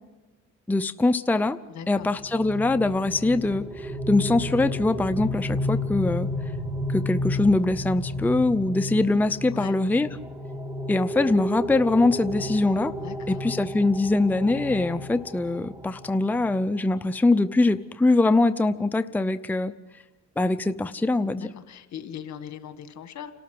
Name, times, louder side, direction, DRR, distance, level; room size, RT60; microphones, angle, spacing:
voice 1, 0.7-1.6 1.9-6.3 6.9-10.1 10.9-12.9 13.3-19.7 20.4-21.5, left 2 dB, 5° left, 11 dB, 0.6 m, -23 dB
voice 2, 1.7-2.1 9.5-9.8 13.0-13.5 21.4-23.3, left 9 dB, 65° left, 9 dB, 1.9 m, -40 dB
sound 1, 2.0-16.7, left 1 dB, 10° right, 2.0 m, -32 dB
29.0 x 13.0 x 7.9 m, 1.2 s
cardioid pair, 90°, 30 cm